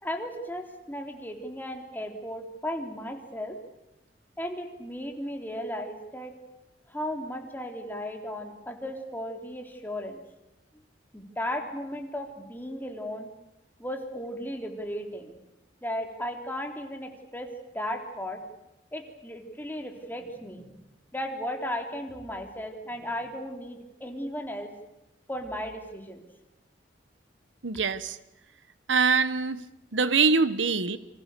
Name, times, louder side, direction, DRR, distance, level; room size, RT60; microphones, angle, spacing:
voice 1, 0.0-3.6 4.4-6.3 6.9-10.2 11.1-13.3 13.8-15.4 15.8-17.5 17.7-18.4 18.9-20.8 21.1-24.7 25.3-26.3, equal, 10° left, 3 dB, 3.7 m, -35 dB
voice 2, 27.6-28.2 28.9-29.6 29.9-31.0, right 5 dB, 85° right, 14 dB, 1.3 m, -23 dB
29.0 x 26.0 x 6.8 m, 0.93 s
head